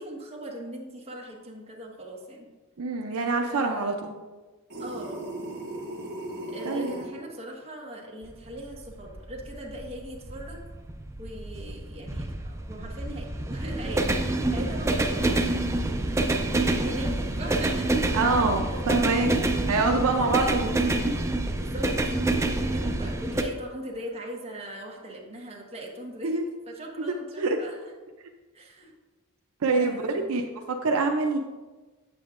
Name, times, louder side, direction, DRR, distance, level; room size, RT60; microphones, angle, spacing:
voice 1, 0.0-2.5 3.5-4.1 4.8-5.5 6.5-10.6 11.2-16.0 16.8-19.3 19.9-20.6 21.5-27.9 28.5-28.9 29.7-30.4, right 1 dB, 30° right, -2 dB, 1.2 m, -40 dB
voice 2, 2.8-3.9 6.6-6.9 18.1-21.2 26.2-26.4 27.1-27.6 29.6-31.4, right 3 dB, 70° right, 3 dB, 0.5 m, -26 dB
sound 1, 4.7-7.1, right 1 dB, 50° right, 1.3 m, -36 dB
sound 2, 8.2-23.4, right 2 dB, 15° right, 0.4 m, -27 dB
7.9 x 7.5 x 2.5 m, 1.2 s
head